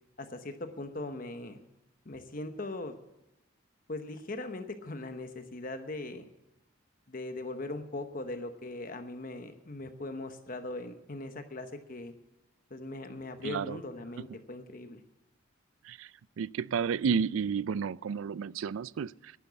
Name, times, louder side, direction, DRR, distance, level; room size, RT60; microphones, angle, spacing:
voice 1, 0.2-1.6 2.0-2.9 3.9-6.3 7.1-12.1 12.7-15.0, left 2 dB, 45° left, 1.0 m, -40 dB
voice 2, 13.4-13.8 15.8-16.1 16.4-19.3, right 6 dB, 80° right, 0.4 m, -31 dB
11.0 x 11.0 x 8.1 m
head